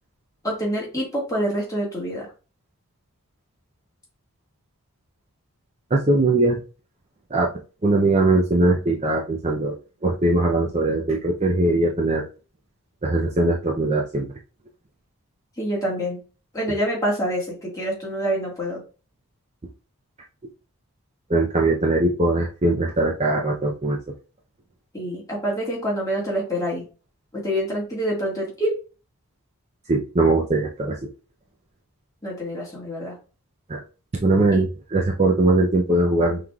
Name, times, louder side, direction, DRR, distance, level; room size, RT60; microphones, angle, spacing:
voice 1, 0.4-2.3 15.6-16.2 16.5-18.8 24.9-26.8 27.3-28.7 32.2-33.2 34.5-34.6, equal, 15° left, -4 dB, 1.7 m, -26 dB
voice 2, 5.9-6.6 7.3-7.5 7.8-9.7 10.0-12.2 13.0-14.3 21.3-24.0 29.9-31.1 33.7-33.8 34.2-36.4, right 2 dB, 30° right, 1 dB, 0.5 m, -20 dB
5.7 x 3.2 x 2.3 m, 0.34 s
head